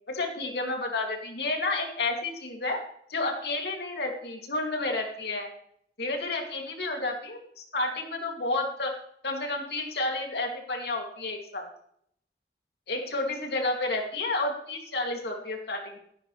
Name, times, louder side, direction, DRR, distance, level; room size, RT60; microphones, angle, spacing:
voice 1, 0.1-2.8 3.1-5.5 6.0-8.9 9.2-11.7 12.9-16.0, left 2 dB, 70° left, 1 dB, 2.9 m, -31 dB
15.5 x 11.5 x 3.4 m, 0.68 s
head